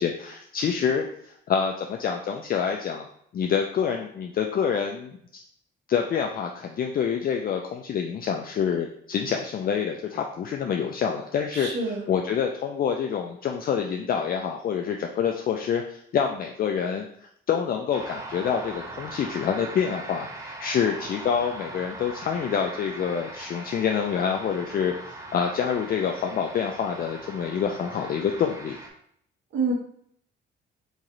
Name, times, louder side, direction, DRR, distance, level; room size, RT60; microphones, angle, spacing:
voice 1, 0.0-3.1 3.3-5.2 5.9-17.1 17.5-28.8, left 7 dB, 50° left, 3 dB, 0.4 m, -27 dB
voice 2, 11.5-12.0 29.5-29.7, right 4 dB, 70° right, 0 dB, 1.0 m, -27 dB
sound 1, 17.9-28.9, right 2 dB, 15° right, 0.6 m, -40 dB
3.0 x 2.7 x 3.8 m, 0.68 s
cardioid pair, 90°, 20 cm